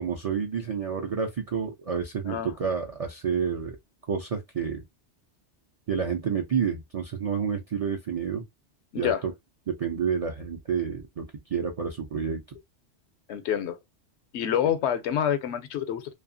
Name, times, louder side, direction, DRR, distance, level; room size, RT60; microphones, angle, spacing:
voice 1, 0.0-3.8 4.1-4.8 5.9-8.4 9.0-9.3 9.7-12.6, right 6 dB, 60° right, 0.3 m, -29 dB
voice 2, 13.3-13.8 14.3-16.1, left 9 dB, 85° left, 0.9 m, -27 dB
2.7 x 2.3 x 2.5 m
omnidirectional pair, 1.2 m